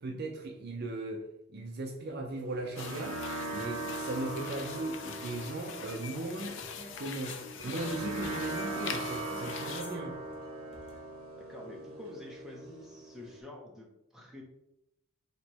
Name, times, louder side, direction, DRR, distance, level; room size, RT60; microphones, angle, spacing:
voice 1, 0.0-1.2 1.5-3.2 3.5-6.6 7.0-10.2, right 2 dB, 50° right, 2 dB, 0.5 m, -38 dB
sound 1, 2.4-13.4, right 2 dB, 75° right, 0.8 m, -40 dB
sound 2, 2.8-9.8, left 7 dB, 60° left, 0.4 m, -43 dB
sound 3, 6.0-11.0, left 3 dB, 25° left, 0.9 m, -49 dB
voice 2, 11.4-14.4, left 2 dB, ahead, -2 dB, 0.7 m, -48 dB
3.2 x 2.9 x 4.5 m, 0.83 s
head